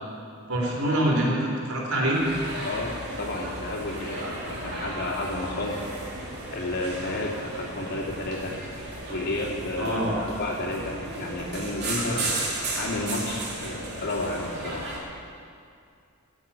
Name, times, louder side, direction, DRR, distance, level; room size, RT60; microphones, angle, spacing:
voice 1, 0.5-2.2 9.8-10.1, right 1 dB, 90° right, -2 dB, 3.9 m, -25 dB
sound 1, 2.1-15.0, right 2 dB, 55° right, 3.1 m, -35 dB
voice 2, 2.6-5.8 6.5-8.5 9.1-12.3 12.7-14.9, left 2 dB, 55° left, -2 dB, 2.7 m, -31 dB
17.5 x 7.3 x 8.8 m, 2.4 s
head